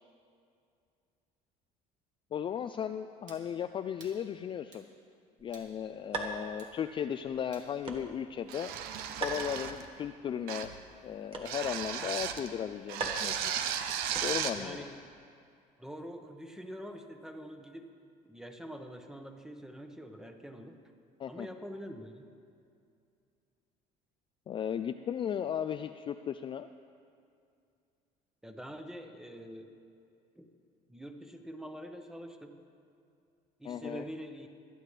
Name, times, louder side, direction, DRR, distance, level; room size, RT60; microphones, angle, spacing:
voice 1, 2.3-4.9 5.4-8.7 9.2-10.7 11.0-13.5 14.2-14.8 21.2-21.5 24.5-26.7 33.6-34.1, left 8 dB, 35° left, 9 dB, 0.3 m, -36 dB
sound 1, 3.3-3.5 4.0-4.2 4.7-4.9 5.5-5.7 6.6-6.8 7.5-7.7 8.5-8.7 9.3-9.5, right 4 dB, 55° right, 2.2 m, -55 dB
sound 2, 5.4-14.7, right 3 dB, 35° right, 1.6 m, -43 dB
sound 3, 8.5-9.9 10.5-10.8 11.5-12.5 12.9-14.6, right 9 dB, 80° right, 0.9 m, -35 dB
voice 2, 14.5-15.0 15.8-17.9 18.2-20.8 21.3-22.2 28.4-29.7 30.3-30.5 30.9-32.6 33.6-34.5, equal, 5° right, 5 dB, 1.1 m, -45 dB
25.5 x 9.4 x 3.3 m, 2.4 s
cardioid pair, 110°, 16 cm